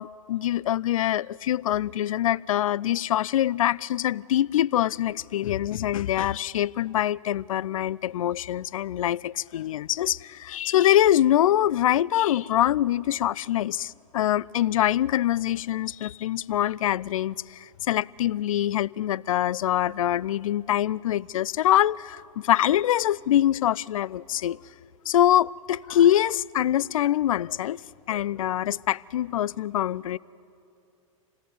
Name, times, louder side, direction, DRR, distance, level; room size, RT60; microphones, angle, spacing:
voice 1, 0.0-24.6 25.1-27.8 28.1-30.2, left 12 dB, 75° left, 0.5 m, -24 dB
27.0 x 18.5 x 9.5 m
hypercardioid pair, 100°, 18 cm